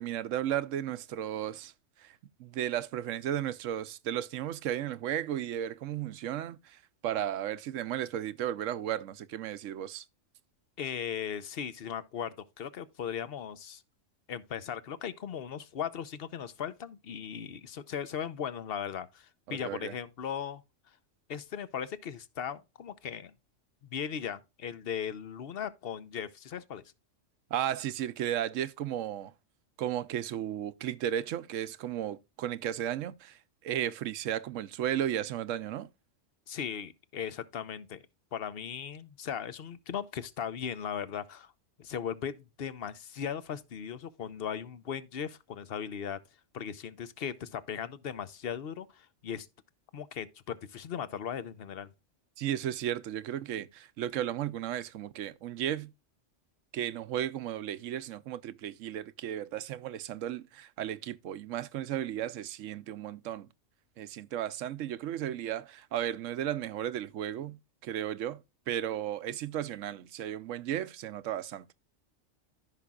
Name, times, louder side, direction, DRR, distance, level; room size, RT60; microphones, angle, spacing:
voice 1, 0.0-1.7 2.0-10.0 19.5-19.9 27.5-29.3 29.8-35.9 52.4-55.9 56.7-63.5 64.0-71.7, right 11 dB, 85° right, 1.0 m, -34 dB
voice 2, 10.8-13.8 14.3-20.6 21.3-23.3 23.8-26.8 36.5-38.0 38.3-41.5 41.8-46.2 46.5-49.5 49.9-51.9, left 8 dB, 55° left, 0.9 m, -38 dB
14.5 x 5.9 x 2.3 m
omnidirectional pair, 1.3 m